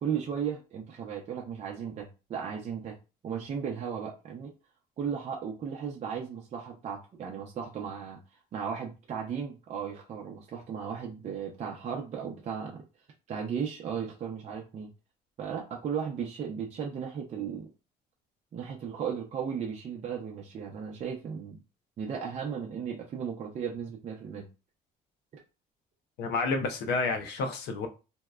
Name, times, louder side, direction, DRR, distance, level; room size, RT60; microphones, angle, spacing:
voice 1, 0.0-3.0 3.2-4.5 5.0-8.2 8.5-12.8 13.3-14.9 15.4-17.7 18.5-21.6 22.0-24.5, right 7 dB, 45° right, 0.5 m, -35 dB
voice 2, 26.2-27.9, left 3 dB, 80° left, 0.6 m, -30 dB
2.7 x 2.1 x 2.3 m
cardioid pair, 110°, 17 cm